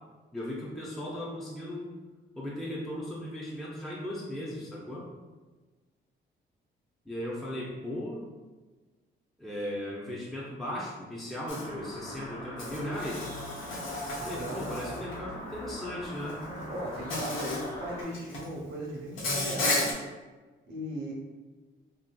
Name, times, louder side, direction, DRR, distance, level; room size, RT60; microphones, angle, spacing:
voice 1, 0.3-1.9 2.4-5.1 7.1-8.3 9.4-13.3 14.2-16.4, left 1 dB, ahead, -5 dB, 0.5 m, -37 dB
Insect, 11.5-11.6 12.6-15.1 16.3-16.4 17.1-17.7 18.0-18.5 19.2-19.9, left 2 dB, 90° left, 0.7 m, -33 dB
sound 1, 11.5-18.0, left 1 dB, 40° left, 1.0 m, -42 dB
voice 2, 14.2-14.7 16.7-20.0 20.7-21.1, equal, 70° right, -2 dB, 0.8 m, -37 dB
2.8 x 2.6 x 2.2 m, 1.3 s
cardioid pair, 90°, 20 cm